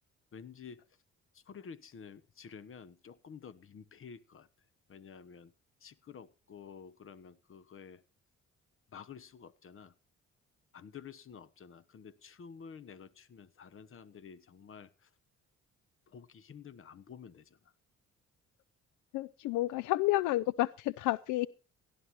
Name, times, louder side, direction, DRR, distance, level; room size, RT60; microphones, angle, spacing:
voice 1, 0.3-1.0 1.3-4.5 4.9-5.5 5.8-8.0 8.9-9.9 10.7-15.1 16.1-17.7, left 6 dB, 45° left, 1.0 m, -51 dB
voice 2, 19.1-21.5, left 16 dB, 85° left, 0.5 m, -30 dB
17.5 x 11.5 x 3.0 m
cardioid pair, 90°, 30 cm